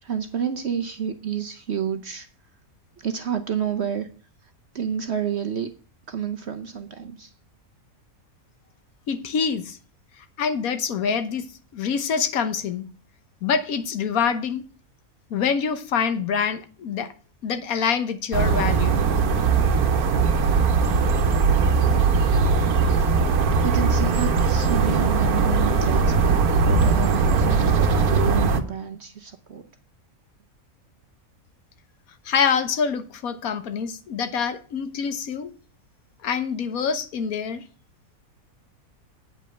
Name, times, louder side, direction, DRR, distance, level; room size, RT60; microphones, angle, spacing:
voice 1, 0.0-2.3 3.0-4.1 4.7-5.7 6.1-7.3 23.6-29.7, right 8 dB, 55° right, 1.0 m, -29 dB
voice 2, 9.1-9.8 10.4-11.5 11.7-12.9 13.4-14.6 15.3-17.1 17.4-19.0 32.2-35.5 36.2-37.6, left 6 dB, 75° left, 1.4 m, -25 dB
sound 1, 18.3-28.6, right 4 dB, 85° right, 1.5 m, -20 dB
8.7 x 5.4 x 7.7 m
omnidirectional pair, 1.5 m